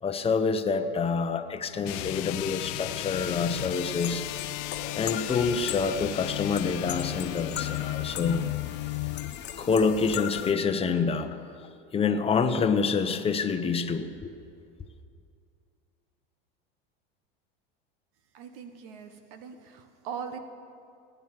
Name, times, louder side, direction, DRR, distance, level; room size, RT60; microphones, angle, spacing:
voice 1, 0.0-4.3 4.9-8.4 9.6-14.3, left 5 dB, 20° left, 7 dB, 0.9 m, -27 dB
sound 1, 1.8-9.4, left 19 dB, 60° left, 0.5 m, -34 dB
sound 2, 3.1-10.5, left 9 dB, 35° left, 1.4 m, -38 dB
voice 2, 18.3-20.4, right 7 dB, 65° right, 8 dB, 1.4 m, -40 dB
18.0 x 9.2 x 7.6 m, 2.4 s
supercardioid pair, 115°, 30 cm